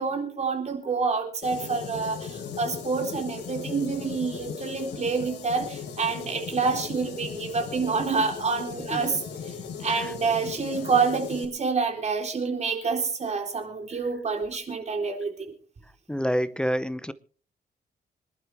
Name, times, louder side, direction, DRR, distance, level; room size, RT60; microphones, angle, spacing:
voice 1, 0.0-9.5 9.8-15.5, right 4 dB, 40° right, 3 dB, 3.9 m, -28 dB
sound 1, 1.4-11.4, left 6 dB, 80° left, 3.6 m, -37 dB
voice 2, 16.1-17.1, equal, 5° left, 14 dB, 0.7 m, -28 dB
26.0 x 11.5 x 3.5 m, 0.41 s
wide cardioid pair, 135°, 18 cm